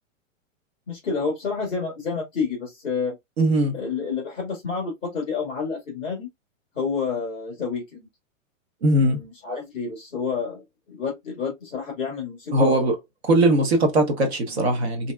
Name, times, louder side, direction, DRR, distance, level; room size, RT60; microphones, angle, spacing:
voice 1, 0.9-3.2 3.7-6.3 6.7-8.1 9.0-12.9 14.5-14.6, left 5 dB, 5° right, 0.4 m, -29 dB
voice 2, 3.4-3.8 8.8-9.2 12.5-12.9 13.2-15.1, right 1 dB, 50° right, 0.9 m, -20 dB
3.2 x 2.7 x 2.2 m
hypercardioid pair, 175°, 40 cm